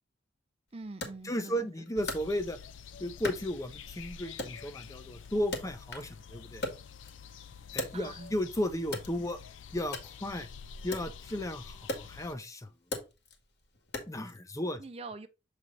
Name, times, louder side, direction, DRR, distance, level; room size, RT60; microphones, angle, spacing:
voice 1, 0.7-1.7 7.9-8.3 14.8-15.3, right 3 dB, 30° right, 0.5 m, -44 dB
Wood, 1.0-2.8 3.2-4.0 4.4-6.2 6.5-8.4 8.8-14.4, left 2 dB, 60° left, 1.7 m, -41 dB
voice 2, 1.2-2.6 3.0-6.6 7.7-9.4 9.7-10.5 10.8-13.0 14.1-14.8, equal, 15° left, 0.6 m, -34 dB
sound 1, 2.0-12.3, left 6 dB, 80° left, 0.5 m, -48 dB
7.2 x 3.4 x 3.9 m
head